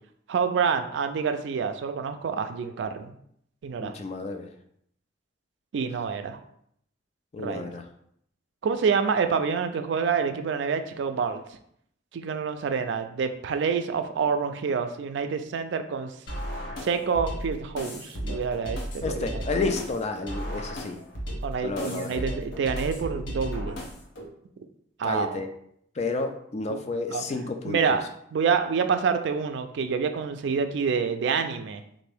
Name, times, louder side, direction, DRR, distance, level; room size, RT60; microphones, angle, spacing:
voice 1, 0.3-3.1 3.6-3.9 5.7-6.4 7.4-7.7 8.6-11.4 12.1-16.1 16.8-19.4 21.4-23.8 25.0-25.4 26.7-26.8 27.1-27.2 27.6-28.0 28.3-31.8, right 6 dB, 65° right, 8 dB, 0.3 m, -27 dB
voice 2, 3.8-4.5 7.3-7.8 19.0-21.0 21.6-22.2 25.0-25.5 26.0-28.0, left 3 dB, 35° left, 5 dB, 0.3 m, -31 dB
sound 1, 16.3-24.3, equal, 75° left, 0.8 m, -35 dB
3.4 x 2.6 x 3.3 m, 0.70 s
head